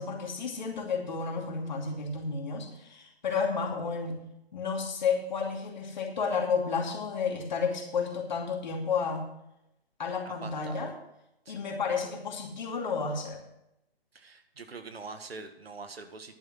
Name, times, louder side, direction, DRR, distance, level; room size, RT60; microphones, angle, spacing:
voice 1, 0.0-4.2 4.5-9.2 10.0-10.9 11.5-13.4, left 5 dB, 45° left, 2 dB, 2.6 m, -31 dB
voice 2, 10.2-10.9 11.4-11.5 14.1-16.3, right 4 dB, 75° right, 8 dB, 1.6 m, -44 dB
11.0 x 8.8 x 6.1 m, 0.83 s
figure-of-eight pair, 155°, 31 cm